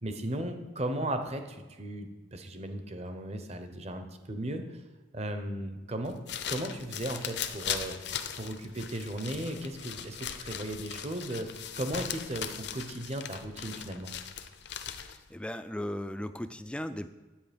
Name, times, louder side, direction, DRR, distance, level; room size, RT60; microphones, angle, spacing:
voice 1, 0.0-4.8 5.1-6.2 6.5-14.1, right 1 dB, 35° right, 7 dB, 0.9 m, -36 dB
sound 1, 6.0-15.3, left 9 dB, 65° left, 0.7 m, -39 dB
voice 2, 14.9-17.1, left 1 dB, 5° left, 11 dB, 0.3 m, -37 dB
10.0 x 8.3 x 5.2 m, 1.2 s
head